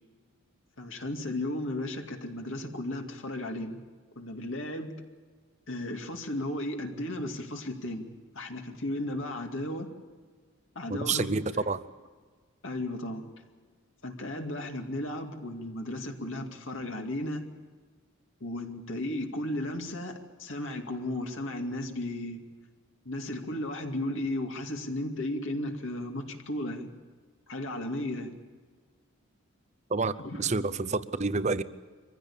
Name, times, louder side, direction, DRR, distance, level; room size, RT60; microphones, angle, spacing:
voice 1, 0.8-3.8 4.2-5.0 5.7-9.9 10.8-11.3 12.6-13.2 14.0-17.4 18.4-22.4 23.0-26.9 27.5-28.4 30.2-30.5, left 1 dB, 65° left, 3 dB, 2.4 m, -35 dB
voice 2, 10.9-11.8 29.9-30.1 30.4-31.6, right 3 dB, 35° right, 15 dB, 0.7 m, -28 dB
24.0 x 15.5 x 8.7 m, 1.5 s
head